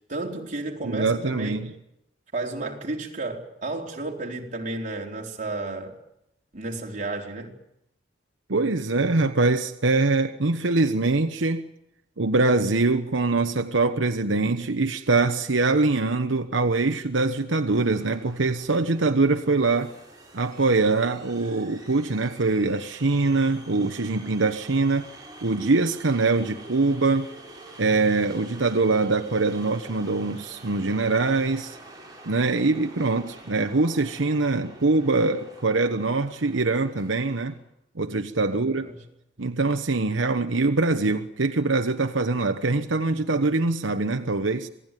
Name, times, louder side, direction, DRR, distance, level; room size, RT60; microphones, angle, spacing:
voice 1, 0.1-1.6 2.3-6.0 6.5-7.5 38.5-39.0, right 2 dB, 45° right, 4.1 m, -32 dB
voice 2, 0.8-1.7 8.5-11.6 12.2-19.9 20.3-25.1 25.4-27.3 27.8-31.8 32.3-37.6 38.0-38.9 39.4-44.7, right 3 dB, 90° right, 1.1 m, -23 dB
sound 1, 17.7-37.6, right 2 dB, 20° right, 7.9 m, -47 dB
27.0 x 18.0 x 9.2 m
head